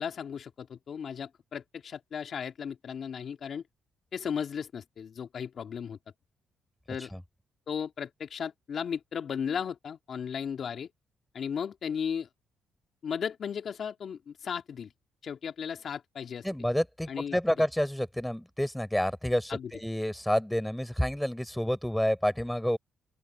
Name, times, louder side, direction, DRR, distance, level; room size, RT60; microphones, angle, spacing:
voice 1, 0.0-3.6 4.1-6.0 6.9-7.1 7.7-10.9 11.3-12.3 13.0-14.9 15.2-16.5 17.1-17.3 19.5-19.7, left 7 dB, 55° left, 2.2 m, -35 dB
voice 2, 16.4-22.8, equal, 5° left, 3.9 m, -29 dB
open air
cardioid pair, 90°, 0 cm